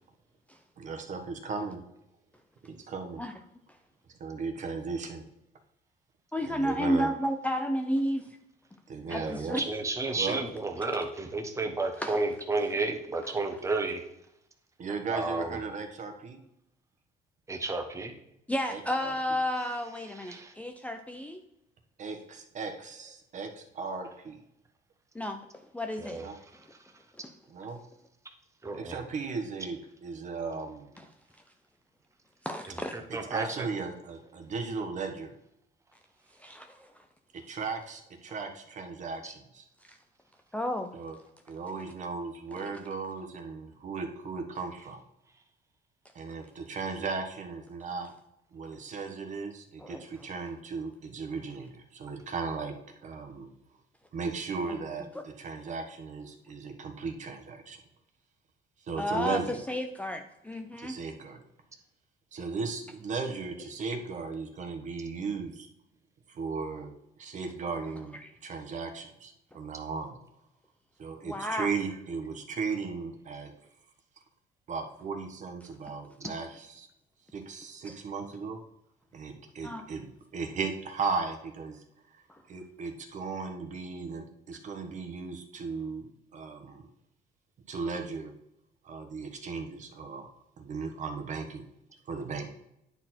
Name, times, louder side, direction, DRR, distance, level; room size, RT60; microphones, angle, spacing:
voice 1, 0.8-1.8 2.6-3.2 4.2-5.2 6.5-7.1 8.9-9.6 10.1-10.4 14.8-16.4 18.7-19.2 22.0-24.4 26.2-26.4 27.5-27.8 28.7-31.0 33.2-35.3 37.3-39.7 40.9-41.2 41.5-45.0 46.1-48.1 48.5-52.8 53.0-53.5 54.1-57.8 58.8-59.6 60.8-61.4 62.3-65.7 66.3-66.9 67.2-70.2 71.0-73.5 74.7-76.9 77.3-78.6 79.1-81.8 82.1-82.2 82.5-86.9 87.7-88.3 88.8-90.3 90.6-91.6 92.1-92.5, right 4 dB, 45° right, 5 dB, 1.2 m, -36 dB
voice 2, 6.3-8.3 9.1-9.7 12.0-12.2 13.3-13.4 18.5-21.4 25.1-26.2 27.2-27.3 32.4-33.0 36.4-36.9 39.8-40.0 40.5-40.9 49.8-50.0 54.7-54.8 55.1-55.2 59.0-61.0 68.2-68.3 71.2-71.7 76.2-76.3 77.9-78.0 79.6-79.8 82.3-82.4, equal, 10° left, 5 dB, 0.5 m, -32 dB
voice 3, 9.1-14.0 15.1-15.6 17.5-18.1 20.1-20.5 26.0-26.3 28.6-29.0 32.9-33.7 39.2-39.3, right 3 dB, 15° right, 5 dB, 1.2 m, -32 dB
9.8 x 4.4 x 4.3 m, 0.83 s
cardioid pair, 110°, 17 cm